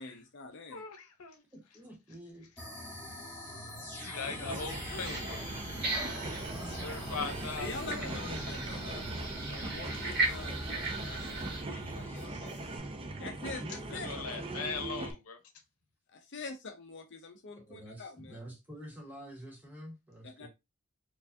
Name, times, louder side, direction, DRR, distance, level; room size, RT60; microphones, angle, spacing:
voice 1, 0.0-0.8 7.6-12.5 13.1-14.7 16.1-18.4 20.2-20.5, left 4 dB, 55° left, 0.6 m, -45 dB
voice 2, 0.7-1.4 4.0-5.4 6.8-8.2 13.9-15.4, left 4 dB, 90° left, 0.8 m, -39 dB
voice 3, 1.5-2.5 6.5-7.3 8.0-9.1 13.5-14.6 17.6-20.5, equal, 10° right, 1.3 m, -48 dB
sound 1, 2.6-12.8, equal, 10° left, 1.4 m, -44 dB
sound 2, 4.1-15.1, right 2 dB, 25° right, 0.5 m, -41 dB
sound 3, 4.5-11.6, right 2 dB, 50° right, 1.2 m, -38 dB
4.6 x 2.4 x 2.6 m
head